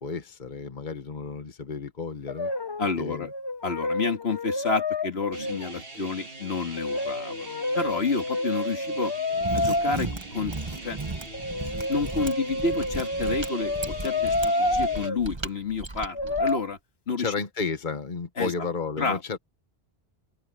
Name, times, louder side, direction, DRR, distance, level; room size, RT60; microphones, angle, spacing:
voice 1, 0.0-2.5 3.0-3.3 17.2-19.4, left 4 dB, 50° left, 1.6 m, -32 dB
Brass instrument, 2.3-3.0 3.3-5.8 6.8-10.0 11.3-15.2 16.1-16.6, left 2 dB, 25° left, 0.8 m, -29 dB
voice 2, 2.8-3.3 3.6-9.1 9.5-10.5 10.8-11.0 11.9-16.8 17.1-17.3 18.4-18.5 19.0-19.2, left 4 dB, 80° left, 2.1 m, -30 dB
sound 1, 5.3-15.1, right 2 dB, 60° right, 2.4 m, -42 dB
Mechanisms, 9.3-16.5, right 3 dB, 25° right, 1.3 m, -36 dB
omnidirectional pair, 1.1 m